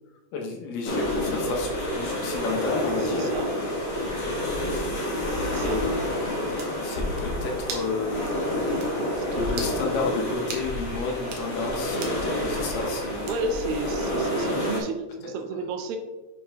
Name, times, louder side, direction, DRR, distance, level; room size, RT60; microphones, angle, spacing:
voice 1, 0.3-3.7 4.0-5.1 5.6-8.7 9.3-13.5 15.2-15.7, left 3 dB, 75° left, 0 dB, 2.4 m, -32 dB
sound 1, 0.8-14.8, left 1 dB, 55° left, 1.5 m, -29 dB
voice 2, 3.1-3.5 5.4-5.8 9.2-9.3 13.2-16.0, right 3 dB, 85° right, 6 dB, 2.3 m, -32 dB
sound 2, 6.6-6.8 7.7-7.9 8.3-8.4 8.8-8.9 9.5-9.8 10.5-10.7 11.2-11.5 12.0-12.2 13.3-13.6, right 4 dB, 70° right, 1.7 m, -37 dB
8.5 x 5.3 x 2.3 m, 1.1 s
omnidirectional pair, 4.1 m